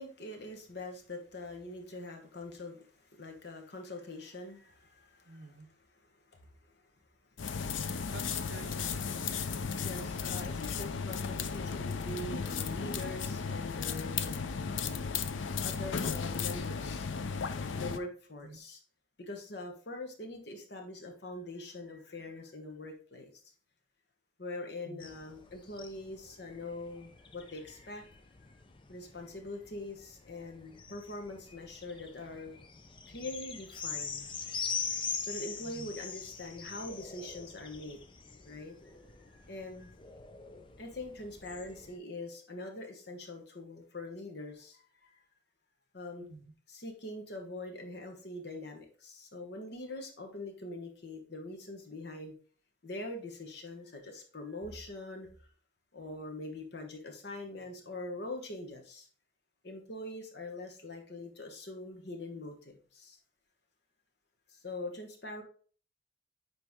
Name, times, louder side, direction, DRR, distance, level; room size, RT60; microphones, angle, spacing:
voice 1, 0.0-6.7 9.8-15.0 15.6-18.8 19.2-23.3 24.4-28.1 28.4-28.6 28.9-32.5 33.1-34.3 35.2-38.1 38.4-38.9 39.3-39.9 40.8-45.2 45.9-46.3 46.7-52.3 52.8-55.3 55.9-59.1 59.6-63.2 64.5-65.4, left 2 dB, 60° left, 3 dB, 1.2 m, -43 dB
voice 2, 5.3-5.7 8.1-9.2 18.4-18.6 24.8-25.1 35.6-35.9 46.2-46.4, right 3 dB, 65° right, 7 dB, 0.8 m, -49 dB
sound 1, 7.4-18.0, left 5 dB, 90° left, 0.5 m, -35 dB
sound 2, 25.0-42.0, left 6 dB, 25° left, 0.5 m, -43 dB
9.5 x 3.3 x 3.6 m, 0.42 s
head